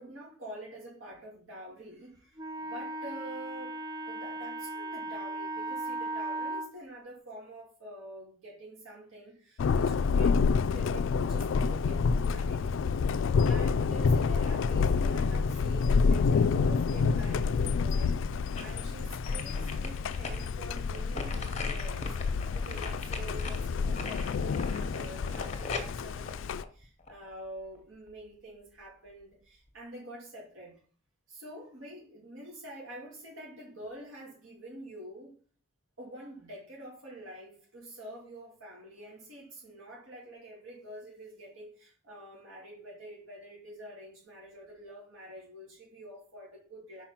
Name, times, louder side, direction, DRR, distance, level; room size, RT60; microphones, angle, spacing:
voice 1, 0.0-10.4 10.7-13.0 13.4-22.2 22.5-30.8 31.3-35.3 36.0-47.0, right 1 dB, 80° right, -4 dB, 2.6 m, -47 dB
Wind instrument woodwind instrument, 2.4-6.7, right 2 dB, 20° right, 0.4 m, -37 dB
Thunder, 9.6-26.6, left 5 dB, 70° left, 0.3 m, -28 dB
sound 1, 18.0-18.8 19.3-27.3 27.7-27.8, left 3 dB, 35° left, 1.1 m, -40 dB
5.7 x 4.6 x 5.9 m, 0.42 s
head